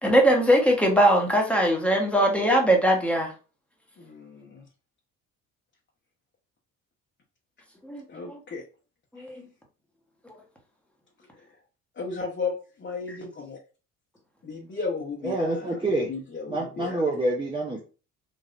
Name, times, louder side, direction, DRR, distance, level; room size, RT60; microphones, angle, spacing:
voice 1, 0.0-3.3 7.8-8.4 9.1-9.5 10.2-10.3, right 1 dB, 5° left, 0 dB, 1.2 m, -21 dB
voice 2, 4.0-4.6 8.1-8.6 9.2-9.3 12.0-13.6 14.4-15.6 16.1-17.0, left 4 dB, 30° left, -3 dB, 1.0 m, -34 dB
voice 3, 15.2-16.1 16.5-17.8, right 2 dB, 15° right, -1 dB, 0.7 m, -27 dB
3.2 x 2.6 x 2.5 m, 0.34 s
hypercardioid pair, 65°, 36 cm